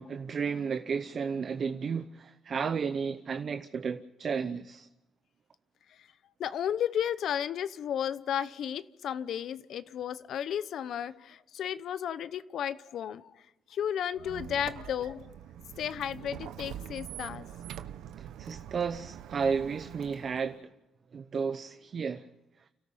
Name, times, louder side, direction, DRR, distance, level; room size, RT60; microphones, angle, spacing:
voice 1, 0.0-4.9 18.2-20.6 21.1-22.3, right 6 dB, 50° right, 0.8 m, -33 dB
voice 2, 6.4-13.3 13.7-15.3 15.8-17.5, left 9 dB, 70° left, 0.8 m, -33 dB
Squeak, 14.1-20.6, right 10 dB, 85° right, 0.8 m, -44 dB
30.0 x 13.5 x 7.3 m
cardioid pair, 90°, 0 cm